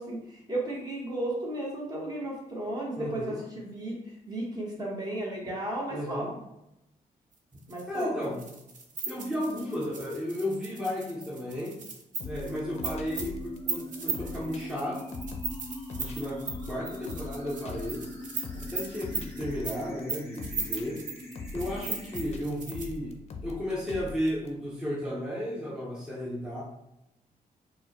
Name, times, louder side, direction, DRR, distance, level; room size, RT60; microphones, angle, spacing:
voice 1, 0.0-6.3 7.7-8.1, right 1 dB, 25° right, -3 dB, 1.0 m, -34 dB
voice 2, 3.0-3.4 5.9-6.4 7.9-8.4 9.1-11.8 12.2-15.2 16.0-18.1 18.5-21.1 21.5-26.6, left 1 dB, 5° right, -5 dB, 0.5 m, -34 dB
sound 1, 7.6-23.0, right 5 dB, 60° right, 0.6 m, -37 dB
sound 2, 12.2-24.5, left 3 dB, 50° left, 0.4 m, -42 dB
sound 3, 12.2-22.2, left 1 dB, 15° left, 0.9 m, -43 dB
4.5 x 2.1 x 2.9 m, 0.86 s
wide cardioid pair, 150°, 15 cm